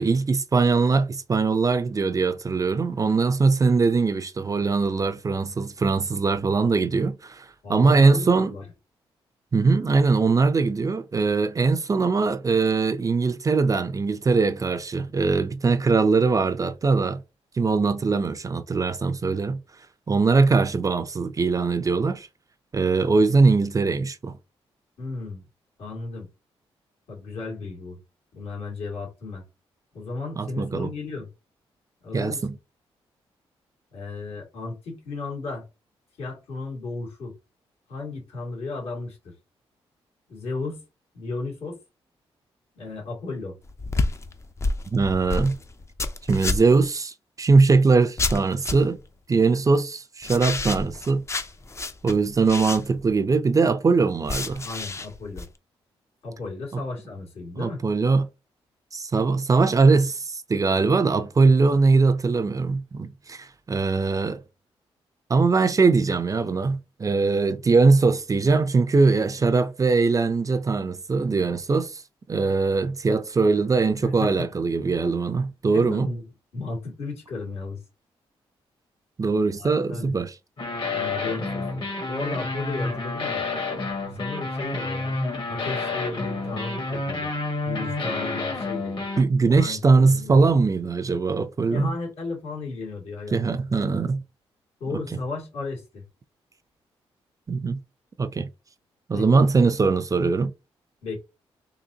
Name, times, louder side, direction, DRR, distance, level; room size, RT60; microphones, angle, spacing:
voice 1, 0.0-8.5 9.5-17.2 17.6-19.6 20.1-22.3 22.7-24.3 30.4-30.9 32.1-32.6 44.9-45.6 46.3-49.0 49.3-51.2 52.0-54.6 56.7-56.8 57.6-58.3 58.9-64.4 65.3-72.0 72.3-76.1 79.2-80.3 89.2-91.9 93.3-94.2 97.5-97.8 98.2-98.5 99.1-100.5, right 4 dB, 35° right, 0.5 m, -21 dB
voice 2, 7.6-8.7 25.0-25.4 25.8-26.3 27.1-28.0 28.3-29.4 29.9-31.3 32.0-32.4 33.9-35.7 36.2-37.4 37.9-39.2 40.3-40.8 41.1-41.8 42.8-43.5 54.6-55.5 56.2-57.8 74.0-74.5 75.7-76.2 76.5-77.8 79.5-80.2 80.9-83.4 84.2-85.2 85.5-87.3 87.6-88.9 89.5-90.5 91.7-93.9 94.8-96.0 99.1-99.4 101.0-101.2, left 3 dB, 75° left, 2.2 m, -34 dB
sound 1, 43.6-46.9 48.2-49.0 50.2-53.1 54.2-55.5, left 3 dB, 25° left, 0.5 m, -29 dB
sound 2, 80.6-89.2, left 3 dB, 50° left, 1.5 m, -29 dB
3.9 x 2.8 x 2.8 m
cardioid pair, 65°, 10 cm